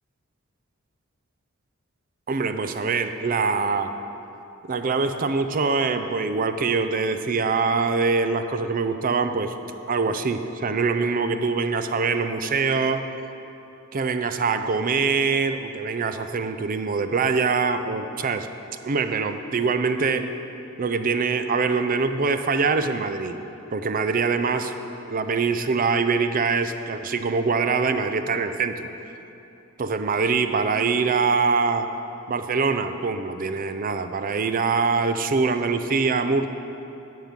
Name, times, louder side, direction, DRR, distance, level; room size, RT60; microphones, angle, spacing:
voice 1, 2.3-4.0 4.6-9.5 9.9-13.1 13.9-18.5 18.8-20.3 20.8-23.4 23.7-24.7 25.1-28.9 29.8-31.9 32.3-36.5, right 4 dB, 40° right, 9 dB, 0.5 m, -24 dB
10.5 x 5.5 x 7.3 m, 3.0 s
head